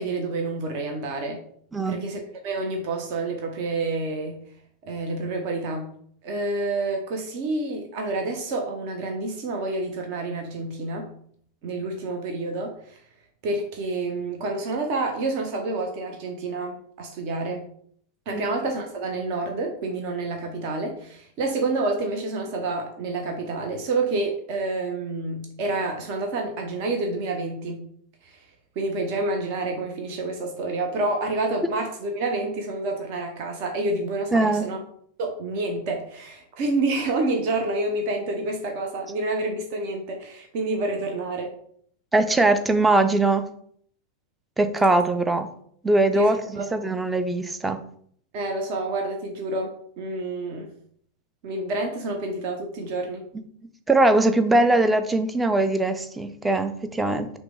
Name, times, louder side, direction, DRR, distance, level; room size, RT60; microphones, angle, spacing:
voice 1, 0.0-1.4 1.9-4.4 4.8-5.9 6.2-11.1 11.6-13.0 13.4-17.6 18.3-27.9 28.2-28.5 28.8-34.8 35.2-41.5 46.1-46.6 48.3-50.7 51.4-53.2, right 2 dB, 45° right, 3 dB, 0.7 m, -28 dB
voice 2, 34.3-34.7 42.1-43.4 44.6-45.5 45.8-47.8 53.9-57.3, right 2 dB, 10° right, 8 dB, 0.4 m, -21 dB
5.8 x 2.1 x 3.4 m, 0.63 s
figure-of-eight pair, 90°, 0 cm